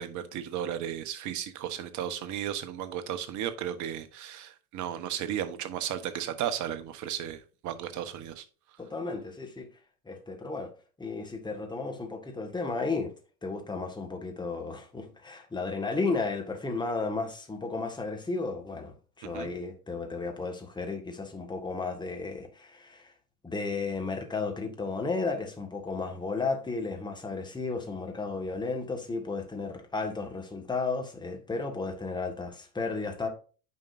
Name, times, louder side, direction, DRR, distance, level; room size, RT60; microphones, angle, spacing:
voice 1, 0.0-8.5 19.2-19.5, right 10 dB, 40° right, 1.2 m, -34 dB
voice 2, 8.8-9.7 10.1-10.7 11.0-13.1 13.4-23.1 23.4-33.3, left 3 dB, 10° left, 1.7 m, -33 dB
9.2 x 5.3 x 2.6 m
hypercardioid pair, 90°, 47 cm